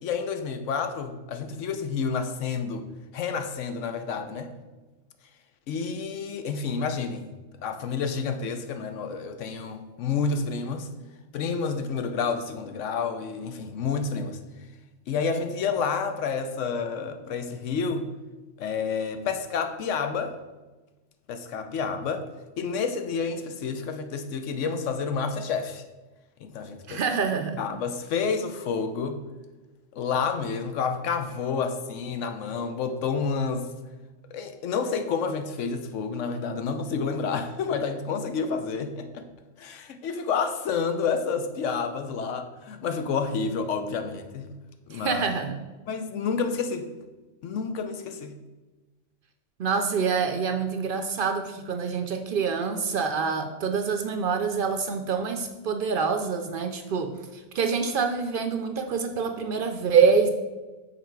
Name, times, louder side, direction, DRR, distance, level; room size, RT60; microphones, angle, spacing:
voice 1, 0.0-2.9 3.1-4.5 5.7-7.3 7.6-10.9 11.3-14.4 15.1-18.1 18.6-20.4 21.3-22.3 22.6-25.8 26.4-27.0 27.6-29.2 29.9-33.7 34.3-39.2 39.6-44.5 44.9-45.2 45.9-46.9 47.4-48.4, left 5 dB, 90° left, 8 dB, 1.0 m, -29 dB
voice 2, 26.9-27.6 44.9-45.6 49.6-60.3, right 5 dB, 60° right, 6 dB, 0.6 m, -26 dB
6.8 x 4.2 x 4.6 m, 1.2 s
omnidirectional pair, 1.2 m